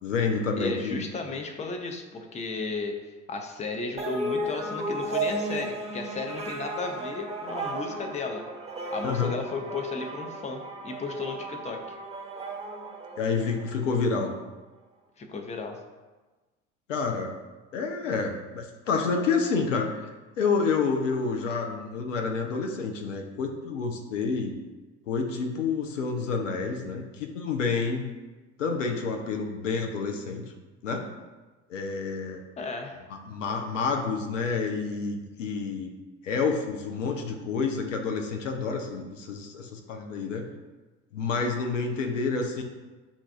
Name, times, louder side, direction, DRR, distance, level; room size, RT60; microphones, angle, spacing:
voice 1, 0.0-1.1 9.0-9.3 13.2-14.3 16.9-17.3 17.7-20.1 20.4-24.6 25.1-28.1 28.6-30.4 30.8-31.1 31.7-32.4 33.1-35.9 36.2-40.5 41.1-42.6, left 4 dB, 85° left, 3 dB, 0.5 m, -29 dB
voice 2, 0.6-8.5 8.9-11.8 15.2-15.8 32.6-33.1, left 4 dB, 20° left, 4 dB, 0.5 m, -34 dB
sound 1, 4.0-13.8, right 2 dB, 15° right, 0.9 m, -34 dB
7.0 x 2.4 x 2.5 m, 1.2 s
figure-of-eight pair, 60°, 37 cm